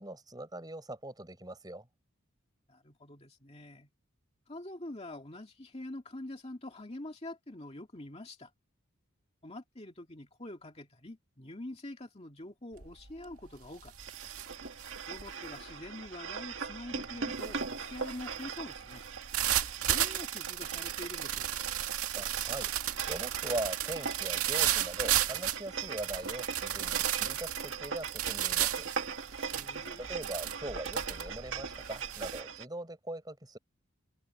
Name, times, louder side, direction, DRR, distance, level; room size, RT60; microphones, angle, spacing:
voice 1, 0.0-1.9 22.1-22.7 23.1-28.9 30.0-33.6, right 1 dB, 20° right, 6.1 m, -41 dB
voice 2, 2.7-3.9 4.5-8.5 9.4-14.3 15.1-19.1 19.8-21.7 29.5-30.1, left 1 dB, 30° left, 2.3 m, -45 dB
sound 1, 12.8-13.1 13.5-32.4, right 11 dB, 90° right, 2.2 m, -34 dB
sound 2, 14.0-32.7, right 6 dB, 60° right, 1.9 m, -41 dB
head